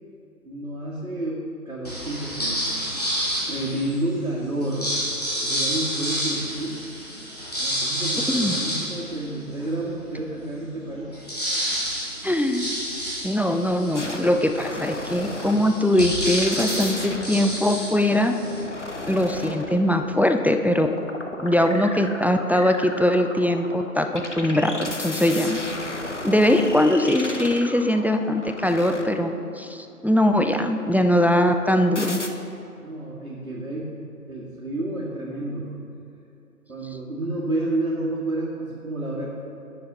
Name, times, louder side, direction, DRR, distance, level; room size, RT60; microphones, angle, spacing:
voice 1, 0.4-2.6 2.9-3.0 3.5-4.9 5.4-6.8 7.6-11.1 32.8-33.9 34.3-35.7 36.7-39.3, right 1 dB, 65° right, -7 dB, 1.9 m, -30 dB
sound 1, 1.8-4.0 4.6-9.8 10.3-10.4 10.6-18.6, equal, 25° left, 1.5 m, -29 dB
voice 2, 12.2-12.8 13.2-18.3 19.1-20.9 21.4-24.1 24.3-25.6 26.2-32.2, left 1 dB, 5° right, 6 dB, 0.3 m, -21 dB
sound 2, 13.9-29.7 31.9-32.3, left 2 dB, 50° left, 0.6 m, -35 dB
10.0 x 6.5 x 4.0 m, 2.8 s
figure-of-eight pair, 170°, 47 cm